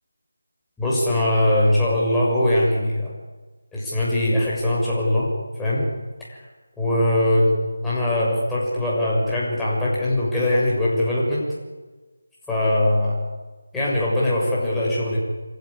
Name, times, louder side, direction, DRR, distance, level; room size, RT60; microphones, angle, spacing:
voice 1, 0.8-3.1 3.7-5.3 5.6-5.8 6.3-6.4 6.8-7.6 7.8-11.5 12.5-13.1 13.7-15.2, left 1 dB, 5° left, -8 dB, 6.5 m, -21 dB
26.0 x 15.5 x 10.0 m, 1.3 s
figure-of-eight pair, 165°, 0 cm